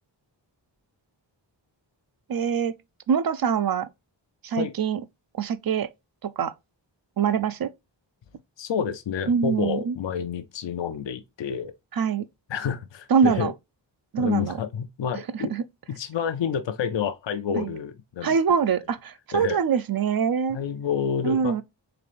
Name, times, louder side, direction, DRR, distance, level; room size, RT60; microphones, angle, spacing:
voice 1, 2.3-2.7 3.1-3.9 4.4-5.0 5.4-5.9 6.2-6.5 7.2-7.7 9.3-10.0 11.9-12.2 13.1-13.5 14.1-14.6 15.3-15.6 17.6-17.7 18.2-20.6 21.2-21.6, right 6 dB, 50° right, 0.5 m, -24 dB
voice 2, 8.6-11.7 12.5-13.5 14.2-15.5 15.9-18.4 19.3-19.6 20.5-21.6, left 7 dB, 70° left, 0.6 m, -29 dB
3.9 x 3.3 x 3.4 m
wide cardioid pair, 60°, 45 cm